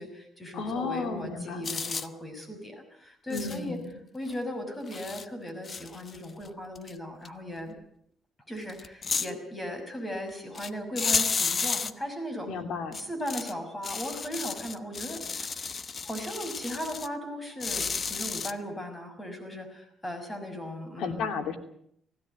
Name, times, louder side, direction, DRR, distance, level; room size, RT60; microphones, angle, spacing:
voice 1, 0.0-3.8 4.1-7.8 8.5-12.5 12.9-15.5 16.0-21.2, equal, 20° left, 6 dB, 6.2 m, -37 dB
voice 2, 0.5-1.7 3.3-3.9 12.5-13.0 21.0-21.6, left 4 dB, 80° left, 7 dB, 3.0 m, -33 dB
sound 1, 1.6-2.1 3.3-3.6 4.3-4.4 4.9-5.3 5.6-6.5 6.8-6.9 7.3-7.4 8.7-9.3 10.5-10.7 11.0-11.9 12.9-13.5 13.8-17.1 17.6-18.5, left 5 dB, 40° left, 1.1 m, -32 dB
19.5 x 16.5 x 9.3 m, 0.68 s
cardioid pair, 90°, 0 cm